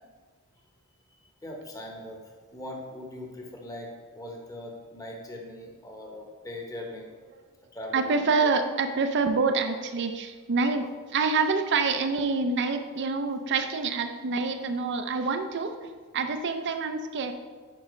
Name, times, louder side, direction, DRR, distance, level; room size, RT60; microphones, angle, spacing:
voice 1, 1.1-7.1 7.7-8.5, left 1 dB, 15° left, 0 dB, 1.1 m, -41 dB
voice 2, 7.9-17.3, right 4 dB, 55° right, 7 dB, 0.5 m, -27 dB
9.9 x 5.0 x 3.2 m, 1.4 s
head